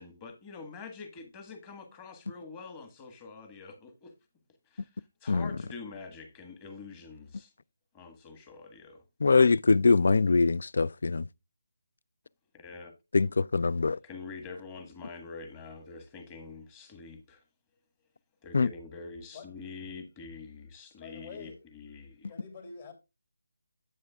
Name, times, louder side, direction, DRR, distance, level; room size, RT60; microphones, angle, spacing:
voice 1, 0.0-4.1 4.7-7.5 7.9-9.0 12.5-12.9 14.0-17.4 18.4-22.3, left 4 dB, 20° left, 1.5 m, -46 dB
voice 2, 9.2-11.3 13.1-14.0 18.5-18.7, left 4 dB, 60° left, 0.3 m, -23 dB
voice 3, 19.3-19.7 21.0-21.8 22.1-22.9, left 4 dB, 40° left, 2.8 m, -46 dB
9.4 x 8.4 x 2.3 m
figure-of-eight pair, 160°, 0 cm